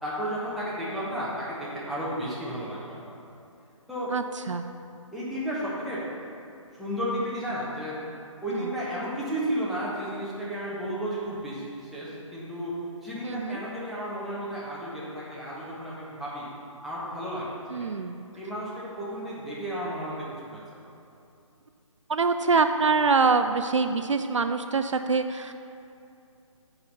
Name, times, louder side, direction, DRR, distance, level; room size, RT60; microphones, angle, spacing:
voice 1, 0.0-3.2 3.9-4.1 5.1-6.0 6.7-8.0 8.4-12.7 13.0-16.5 16.8-17.9 18.3-20.9, equal, ahead, -9 dB, 1.1 m, -33 dB
voice 2, 4.1-4.7 8.5-8.6 13.2-13.6 17.7-18.2 22.1-25.5, right 4 dB, 65° right, 8 dB, 0.4 m, -25 dB
5.7 x 5.5 x 6.7 m, 2.6 s
figure-of-eight pair, 140°, 17 cm